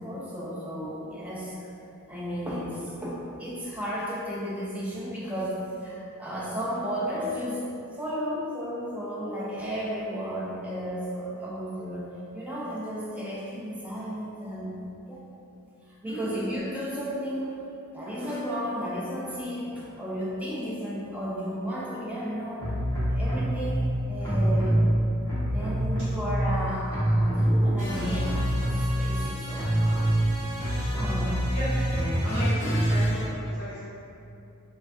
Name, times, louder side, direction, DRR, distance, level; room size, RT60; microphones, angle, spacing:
voice 1, 0.0-1.7 2.1-12.1 12.3-15.2 15.9-17.7 17.9-22.7 23.1-24.8 25.5-30.0 30.9-31.6, equal, 5° right, -6 dB, 0.4 m, -33 dB
voice 2, 16.0-16.4 26.0-26.1 31.5-31.7 32.2-33.8, equal, 65° right, -18 dB, 1.3 m, -35 dB
sound 1, 22.6-23.7 24.2-26.6 26.9-33.2, right 1 dB, 10° left, 0.8 m, -25 dB
3.2 x 2.2 x 2.5 m, 2.8 s
head